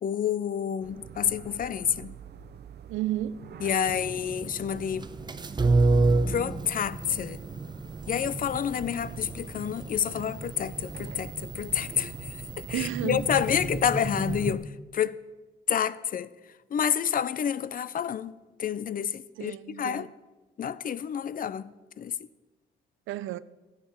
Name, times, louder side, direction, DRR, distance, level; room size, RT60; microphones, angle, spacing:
voice 1, 0.0-2.2 3.6-5.1 6.3-7.4 8.1-15.2 15.7-20.1 20.6-22.3, left 8 dB, 45° left, 0.5 m, -29 dB
sound 1, 0.8-14.6, right 8 dB, 55° right, 0.8 m, -47 dB
voice 2, 2.9-3.4 12.7-13.3 19.4-20.1 23.1-23.4, right 14 dB, 85° right, 0.5 m, -32 dB
sound 2, 3.9-14.5, right 3 dB, 20° right, 0.7 m, -30 dB
12.5 x 8.9 x 5.7 m
cardioid pair, 90°, 20 cm